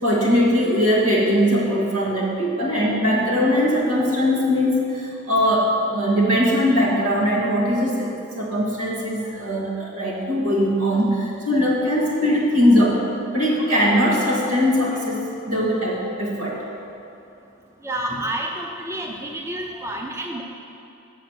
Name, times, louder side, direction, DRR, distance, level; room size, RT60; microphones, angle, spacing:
voice 1, 0.0-13.0 13.3-16.6, equal, 90° right, -4 dB, 1.9 m, -20 dB
voice 2, 17.8-20.4, right 1 dB, 15° right, 1 dB, 0.5 m, -29 dB
7.2 x 6.5 x 6.2 m, 2.7 s
head